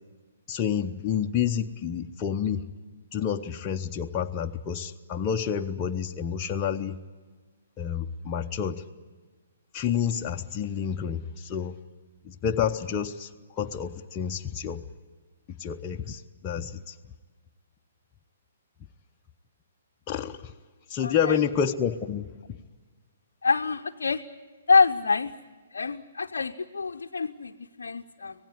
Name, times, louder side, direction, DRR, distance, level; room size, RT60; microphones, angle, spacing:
voice 1, 0.5-2.6 3.1-7.0 7.8-8.8 9.7-11.8 12.3-13.3 13.6-14.8 15.5-16.9 20.1-20.5 20.9-22.3, left 8 dB, 25° left, 3 dB, 0.7 m, -29 dB
voice 2, 21.0-21.4 23.4-24.2 24.7-25.3 25.7-28.3, left 4 dB, 60° left, 4 dB, 0.7 m, -25 dB
25.5 x 18.0 x 9.8 m, 1.4 s
figure-of-eight pair, 125°, 0 cm